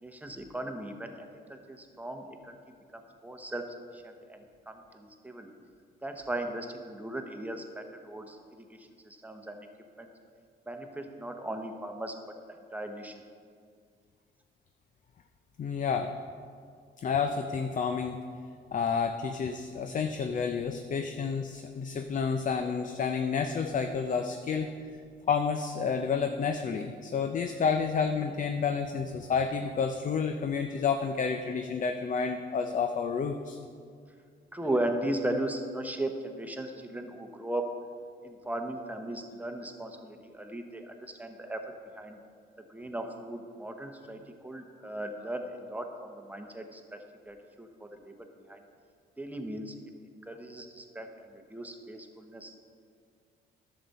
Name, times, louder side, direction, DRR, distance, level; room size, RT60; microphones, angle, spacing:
voice 1, 0.0-2.6 2.9-3.6 3.9-5.5 6.0-8.4 8.7-9.7 10.0-10.1 10.7-12.1 12.5-13.1 34.5-37.6 38.2-41.6 41.9-42.2 42.7-47.0 47.3-48.1 48.5-48.6 49.2-49.7 50.2-52.6, right 1 dB, 10° right, 4 dB, 0.9 m, -37 dB
voice 2, 15.6-16.1 17.0-18.2 18.7-24.7 25.3-33.6, left 6 dB, 40° left, 6 dB, 0.5 m, -30 dB
11.0 x 6.9 x 4.1 m, 2.2 s
cardioid pair, 90°, 20 cm